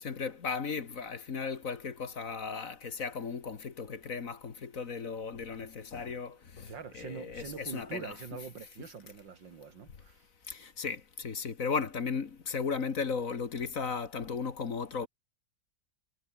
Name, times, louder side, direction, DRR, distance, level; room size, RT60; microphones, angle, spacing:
voice 1, 0.0-8.1 10.5-15.1, left 5 dB, 50° left, 2.0 m, -36 dB
voice 2, 6.7-10.3, right 6 dB, 85° right, 2.9 m, -44 dB
omnidirectional pair, 1.9 m